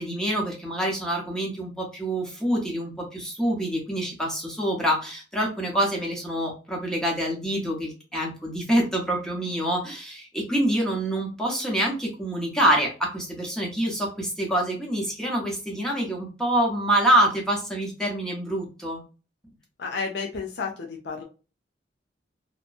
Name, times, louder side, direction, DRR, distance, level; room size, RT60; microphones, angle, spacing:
voice 1, 0.0-19.0, right 1 dB, 5° left, -2 dB, 0.8 m, -26 dB
voice 2, 19.8-21.2, left 4 dB, 65° left, 1 dB, 0.5 m, -31 dB
2.8 x 2.1 x 2.4 m, 0.34 s
head